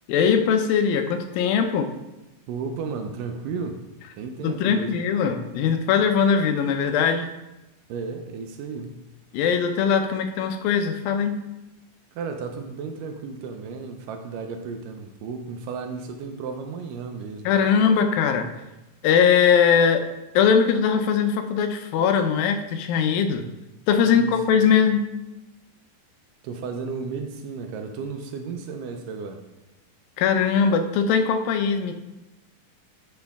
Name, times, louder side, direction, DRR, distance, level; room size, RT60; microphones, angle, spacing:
voice 1, 0.1-1.9 4.4-7.3 9.3-11.4 17.5-18.6 19.0-20.1 20.3-23.5 23.9-25.1 30.2-31.9, left 7 dB, 85° left, 7 dB, 2.5 m, -21 dB
voice 2, 2.5-3.9 4.1-5.0 7.9-9.1 12.1-17.5 24.0-24.4 26.4-29.4, right 5 dB, 80° right, 6 dB, 2.1 m, -33 dB
10.5 x 4.9 x 3.5 m, 1.0 s
omnidirectional pair, 4.1 m